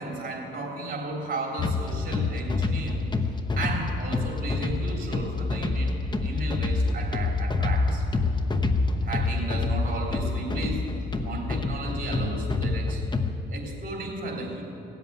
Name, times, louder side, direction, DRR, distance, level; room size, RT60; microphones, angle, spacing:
voice 1, 0.0-3.0 3.6-8.0 9.0-10.9 11.2-13.0 13.5-14.6, right 2 dB, 45° right, 0 dB, 3.5 m, -34 dB
sound 1, 1.6-13.3, left 3 dB, 20° left, 0.9 m, -27 dB
17.5 x 8.1 x 9.2 m, 2.9 s
cardioid pair, 90°, 20 cm